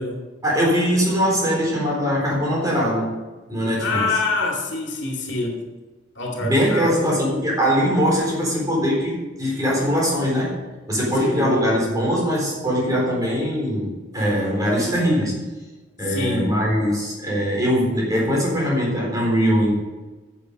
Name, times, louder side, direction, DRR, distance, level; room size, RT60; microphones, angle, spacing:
voice 1, 0.4-3.1 3.5-4.0 6.4-10.5 10.9-15.4 16.0-19.7, equal, 20° right, -4 dB, 4.0 m, -21 dB
voice 2, 3.8-5.6 6.2-7.2 11.2-11.6 16.0-16.6, left 3 dB, 60° left, 0 dB, 2.4 m, -26 dB
11.0 x 7.6 x 5.3 m, 1.2 s
head